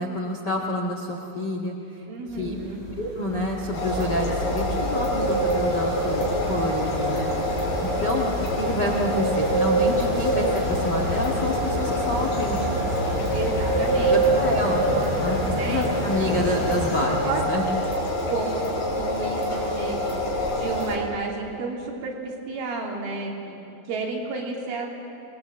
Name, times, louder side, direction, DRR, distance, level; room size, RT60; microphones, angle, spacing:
voice 1, 0.0-2.0 2.4-2.6 2.9-7.3 7.8-8.3 8.6-12.9 14.0-14.9 15.2-15.4 15.6-17.6, left 1 dB, 90° left, 0 dB, 0.9 m, -28 dB
voice 2, 2.1-2.8 13.3-14.2 14.9-15.8 17.3-17.4 18.3-20.0 20.5-22.1 22.5-23.6 23.9-24.9, right 3 dB, 80° right, -2 dB, 5.6 m, -31 dB
sound 1, 2.4-17.0, right 2 dB, 5° right, 4.2 m, -27 dB
sound 2, 3.7-21.0, left 1 dB, 55° left, 6.4 m, -27 dB
25.5 x 20.5 x 7.7 m, 2.8 s
omnidirectional pair, 5.5 m